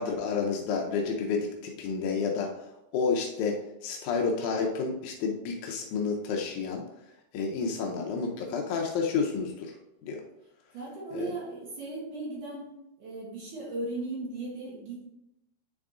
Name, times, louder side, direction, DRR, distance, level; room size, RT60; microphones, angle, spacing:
voice 1, 0.0-6.8 7.3-9.8 10.0-10.2 11.1-11.3, left 5 dB, 85° left, 1 dB, 1.7 m, -30 dB
voice 2, 10.7-12.7 13.0-15.0, right 2 dB, 65° right, -3 dB, 2.5 m, -37 dB
8.9 x 3.7 x 3.6 m, 0.88 s
omnidirectional pair, 4.3 m